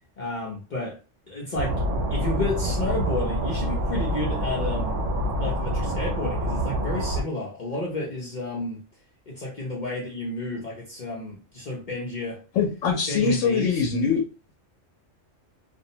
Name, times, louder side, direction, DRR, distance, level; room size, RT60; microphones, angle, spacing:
voice 1, 0.2-1.0 1.3-1.8 2.1-5.0 5.4-8.8 9.3-12.4 13.1-13.9, left 2 dB, 45° left, 0.7 m, -31 dB
sound 1, 1.5-7.2, equal, 75° right, 1.0 m, -26 dB
voice 2, 12.5-14.2, left 5 dB, 90° left, 1.0 m, -23 dB
2.5 x 2.0 x 2.7 m
omnidirectional pair, 1.3 m